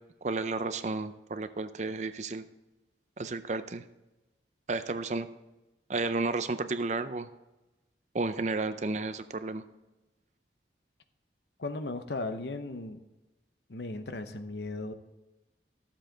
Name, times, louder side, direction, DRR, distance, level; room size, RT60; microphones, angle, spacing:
voice 1, 0.2-2.4 3.2-3.8 4.7-5.3 5.9-7.3 8.1-9.6, right 3 dB, 40° right, 11 dB, 0.5 m, -32 dB
voice 2, 11.6-13.0 13.7-14.9, left 2 dB, 70° left, 9 dB, 0.8 m, -36 dB
13.0 x 7.5 x 3.9 m, 1.0 s
head